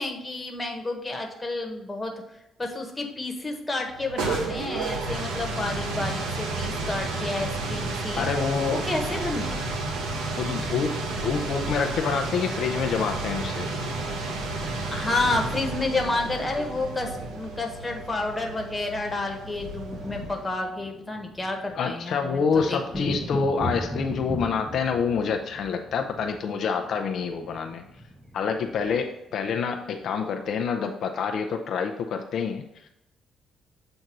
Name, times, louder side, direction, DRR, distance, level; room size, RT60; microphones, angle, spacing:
voice 1, 0.0-2.1 2.6-8.3 8.7-9.6 14.9-23.1, left 2 dB, 15° left, 2 dB, 1.3 m, -30 dB
sound 1, 3.9-20.6, right 2 dB, 90° right, 1.0 m, -31 dB
voice 2, 8.1-8.8 10.4-13.7 21.7-27.8 28.3-32.9, left 5 dB, 65° left, 4 dB, 0.5 m, -27 dB
sound 2, 19.1-30.5, equal, 5° right, 1.0 m, -40 dB
7.7 x 2.7 x 5.9 m, 0.88 s
cardioid pair, 90°, 0 cm